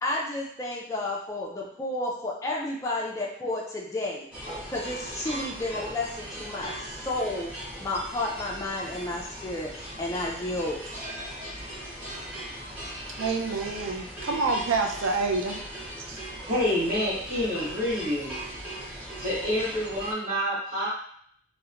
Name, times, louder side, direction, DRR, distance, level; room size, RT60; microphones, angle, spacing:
voice 1, 0.0-4.3 4.7-7.5 7.8-10.8, left 2 dB, 15° left, 0.3 m, -31 dB
sound 1, 4.3-20.1, right 1 dB, 10° right, 0.7 m, -39 dB
voice 2, 13.2-15.6 16.1-16.2, right 3 dB, 65° right, 0.4 m, -27 dB
voice 3, 16.5-18.3 18.9-20.9, equal, 40° right, 1.1 m, -28 dB
2.8 x 2.1 x 2.4 m
head